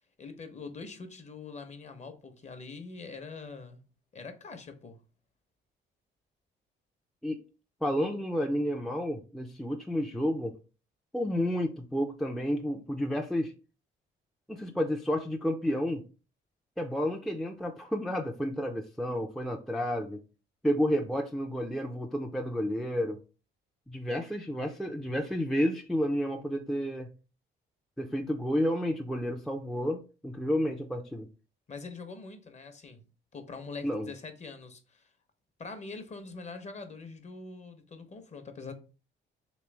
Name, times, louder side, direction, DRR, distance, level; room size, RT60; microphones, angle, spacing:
voice 1, 0.2-3.8 4.1-5.0 31.7-33.0 33.3-35.1 35.6-38.7, left 4 dB, 35° left, 0.7 m, -44 dB
voice 2, 7.8-10.5 11.1-13.5 14.5-16.0 16.8-20.2 20.6-23.2 23.9-27.1 28.0-31.3 33.8-34.1, equal, ahead, 0.4 m, -31 dB
3.2 x 3.1 x 3.3 m
cardioid pair, 90°, 20 cm